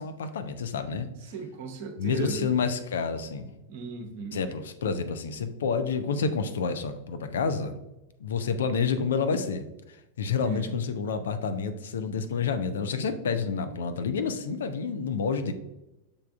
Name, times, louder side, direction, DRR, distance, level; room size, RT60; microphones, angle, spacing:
voice 1, 0.0-1.1 2.0-3.5 4.3-7.7 8.2-15.5, left 5 dB, 65° left, 9 dB, 0.4 m, -29 dB
voice 2, 1.3-2.5 3.7-4.4 10.4-10.6, right 4 dB, 50° right, 4 dB, 0.8 m, -36 dB
6.7 x 3.4 x 2.3 m, 0.95 s
figure-of-eight pair, 90°, 0 cm